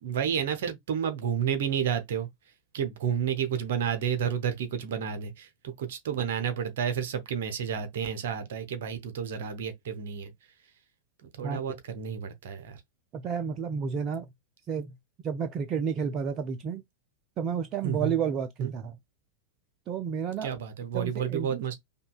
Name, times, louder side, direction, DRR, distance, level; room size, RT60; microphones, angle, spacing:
voice 1, 0.0-2.3 2.7-10.3 11.2-12.8 17.8-18.1 18.6-18.7 20.4-21.7, right 8 dB, 55° right, 0.8 m, -31 dB
voice 2, 13.1-14.3 14.7-14.9 15.2-16.8 17.4-19.0 19.9-20.5 20.9-21.6, right 6 dB, 35° right, 0.4 m, -31 dB
5.2 x 2.3 x 2.3 m
figure-of-eight pair, 90°, 0 cm